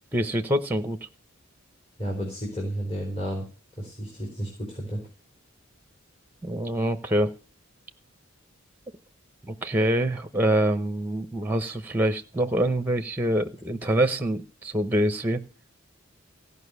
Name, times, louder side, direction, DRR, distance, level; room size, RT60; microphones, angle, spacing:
voice 1, 0.1-1.0 6.4-7.3 9.5-15.4, right 1 dB, 10° right, 9 dB, 0.8 m, -25 dB
voice 2, 2.0-3.4 3.8-5.0, equal, 30° left, 0 dB, 3.8 m, -32 dB
16.5 x 5.5 x 8.2 m, 0.39 s
head